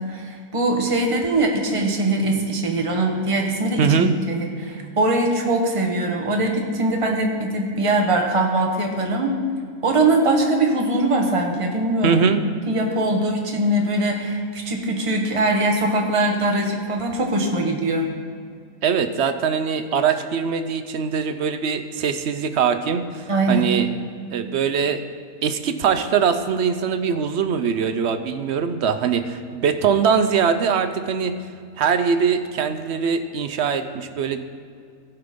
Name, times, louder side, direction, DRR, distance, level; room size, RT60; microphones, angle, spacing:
voice 1, 0.0-9.3 9.8-12.2 12.7-18.1 23.3-23.7, right 2 dB, 25° right, 1 dB, 1.1 m, -22 dB
voice 2, 3.8-4.1 12.0-12.4 18.8-23.9 24.3-25.0 25.4-31.3 31.8-34.4, right 6 dB, 60° right, 10 dB, 0.8 m, -22 dB
15.5 x 5.9 x 5.1 m, 2.2 s
omnidirectional pair, 1.5 m